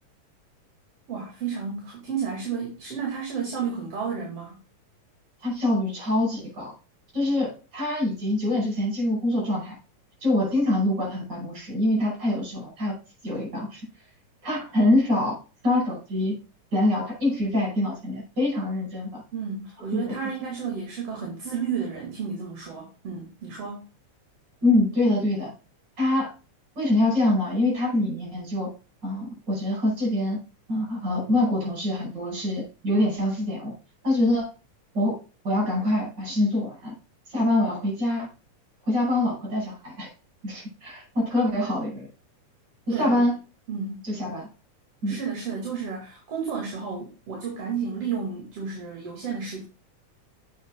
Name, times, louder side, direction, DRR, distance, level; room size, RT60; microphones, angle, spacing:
voice 1, 1.1-4.6 19.3-23.8 42.9-43.2 43.7-44.0 45.1-49.6, right 6 dB, 55° right, -1 dB, 2.9 m, -32 dB
voice 2, 5.4-6.7 7.1-9.8 10.2-13.0 13.2-13.8 14.4-15.4 15.6-16.3 16.7-19.2 19.9-20.1 24.6-25.5 26.0-26.3 26.8-28.7 29.0-30.4 30.7-33.7 34.0-34.5 34.9-35.2 35.4-36.9 37.3-38.3 38.9-40.1 40.4-42.1 42.9-43.3 44.0-44.5 45.0-45.2, left 1 dB, 30° right, -2 dB, 5.7 m, -25 dB
8.1 x 5.4 x 3.6 m, 0.32 s
omnidirectional pair, 3.5 m